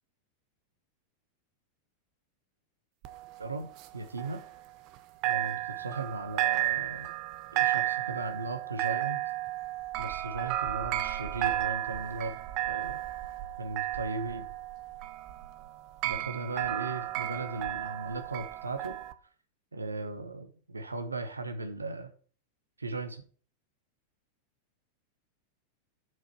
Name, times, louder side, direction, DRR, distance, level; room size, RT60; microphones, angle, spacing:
sound 1, 3.0-5.0 5.2-19.1, right 14 dB, 40° right, 0.7 m, -33 dB
voice 1, 3.4-4.4 5.2-7.1 7.5-9.2 10.0-13.0 13.6-14.5 16.0-19.0 19.7-22.1 22.8-23.2, right 3 dB, 80° right, 8 dB, 0.8 m, -37 dB
7.6 x 4.9 x 6.0 m, 0.42 s
figure-of-eight pair, 90°, 0 cm